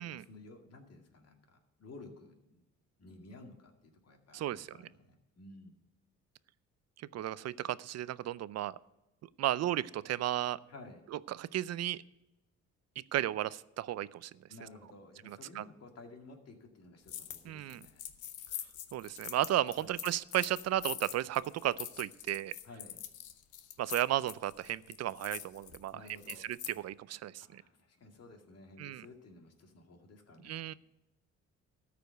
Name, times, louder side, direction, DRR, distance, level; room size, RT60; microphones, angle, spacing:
voice 1, 0.0-2.6 3.0-5.7 10.7-11.0 14.5-18.1 19.8-20.0 22.6-23.0 25.9-26.5 27.4-30.6, left 2 dB, 55° left, 3 dB, 2.2 m, -54 dB
voice 2, 4.3-4.7 7.1-8.8 9.4-10.6 11.3-12.0 13.1-14.3 15.3-15.6 17.5-17.8 18.9-22.5 23.8-26.0 26.5-27.6 28.8-29.1 30.4-30.7, right 13 dB, 60° right, 19 dB, 0.5 m, -34 dB
sound 1, 17.1-17.4 17.7-26.7, left 11 dB, 80° left, 0.9 m, -44 dB
13.5 x 5.1 x 7.8 m, 0.98 s
cardioid pair, 90°, 30 cm